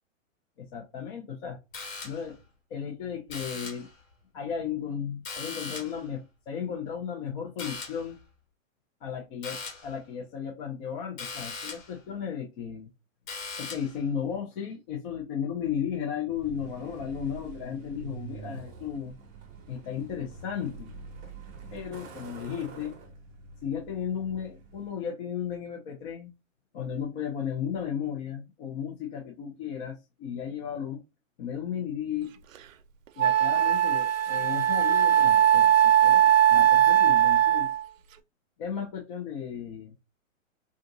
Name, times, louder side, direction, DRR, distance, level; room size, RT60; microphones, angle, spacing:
voice 1, 0.6-1.6 2.0-2.4 2.7-3.9 4.3-8.2 9.0-12.9 13.6-19.1 19.7-20.9 21.7-22.9 23.6-26.3 26.7-31.0 31.4-32.4 33.2-37.7 38.6-39.9, left 8 dB, 40° left, 0.7 m, -35 dB
sound 1, 1.7-2.4 3.3-4.0 5.2-6.1 7.6-8.1 9.4-9.9 11.2-12.0 13.3-14.0, left 4 dB, 75° left, 1.5 m, -39 dB
Truck, 16.3-25.0, right 4 dB, 20° right, 0.7 m, -45 dB
Wind instrument woodwind instrument, 32.5-32.6 33.2-37.8, right 11 dB, 75° right, 0.5 m, -20 dB
3.7 x 2.5 x 2.6 m
hypercardioid pair, 135°, 40 cm